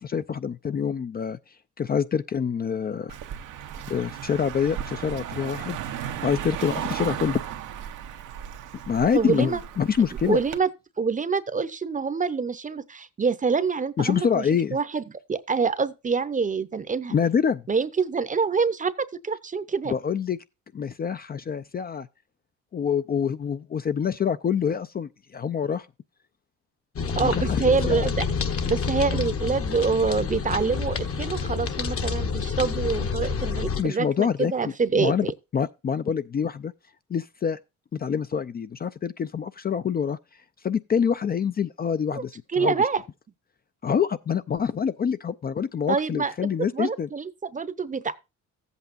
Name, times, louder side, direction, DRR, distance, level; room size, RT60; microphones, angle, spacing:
voice 1, 0.0-1.4 1.8-3.2 3.9-7.4 8.8-10.4 14.0-14.8 17.1-17.6 19.9-20.4 20.7-22.1 22.7-25.9 27.1-28.1 33.8-34.5 34.9-35.3 35.5-36.7 37.1-37.6 37.9-40.2 40.6-42.8 43.8-47.1, left 7 dB, 30° left, 0.4 m, -26 dB
Car passing by, 3.1-10.6, right 10 dB, 90° right, 1.0 m, -35 dB
voice 2, 9.1-9.6 10.3-10.7 11.0-14.5 14.7-15.0 15.3-17.1 17.7-19.9 27.2-28.2 28.6-35.3 42.1-42.2 42.5-43.0 45.9-46.3 46.7-48.1, right 5 dB, 25° right, 0.7 m, -26 dB
sound 1, 27.0-33.8, left 5 dB, 50° left, 1.1 m, -28 dB
14.0 x 8.2 x 2.5 m
cardioid pair, 90°, 30 cm